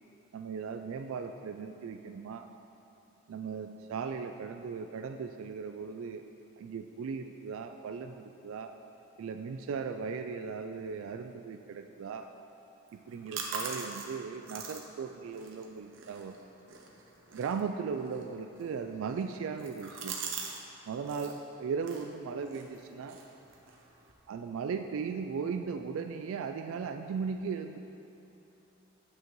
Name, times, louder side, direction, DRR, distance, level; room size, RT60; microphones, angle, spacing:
voice 1, 0.3-2.5 3.3-6.3 6.6-8.7 9.2-12.3 12.9-16.4 17.3-20.2 20.9-23.2 24.3-27.8, right 5 dB, 90° right, 6 dB, 0.3 m, -37 dB
sound 1, 12.9-20.6 20.9-21.4 21.8-24.1, right 5 dB, 70° right, 0.8 m, -44 dB
9.0 x 7.4 x 3.1 m, 2.8 s
head